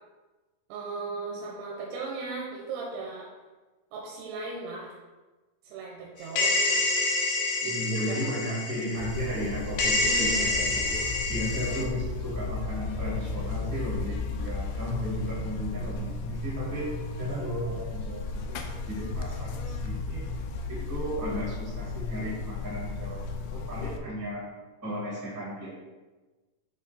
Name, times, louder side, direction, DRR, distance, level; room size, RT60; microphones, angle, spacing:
voice 1, 0.7-3.3 3.9-4.9 5.6-6.6 7.6-8.3 9.9-10.6, right 3 dB, 90° right, -3 dB, 2.9 m, -37 dB
sound 1, 6.4-9.5 9.8-11.8, left 2 dB, 65° left, 2.3 m, -27 dB
voice 2, 7.6-16.9 17.2-20.3 20.7-24.4 24.8-25.7, equal, 15° right, -6 dB, 0.7 m, -34 dB
Buzz, 9.0-24.0, left 3 dB, 80° left, 2.5 m, -35 dB
8.7 x 3.5 x 4.2 m, 1.2 s
omnidirectional pair, 4.7 m